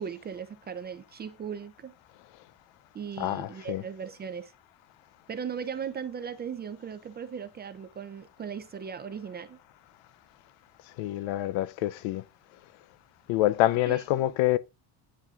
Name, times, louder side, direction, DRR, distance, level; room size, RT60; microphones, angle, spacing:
voice 1, 0.0-1.9 2.9-4.5 5.3-9.6 13.9-14.0, right 7 dB, 25° right, 0.3 m, -38 dB
voice 2, 3.2-3.8 11.0-12.2 13.3-14.6, left 15 dB, 85° left, 0.6 m, -26 dB
9.9 x 7.6 x 2.4 m
cardioid pair, 140°, 45 cm